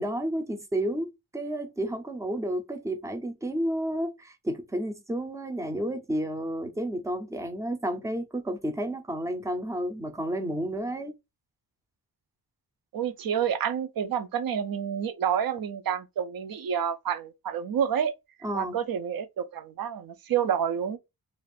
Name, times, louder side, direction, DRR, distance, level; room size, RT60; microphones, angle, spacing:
voice 1, 0.0-11.1 18.4-18.8, right 1 dB, 10° right, 0.4 m, -31 dB
voice 2, 12.9-18.1 18.5-21.0, right 8 dB, 60° right, 0.5 m, -29 dB
2.5 x 2.4 x 3.2 m
wide cardioid pair, 150°, 40 cm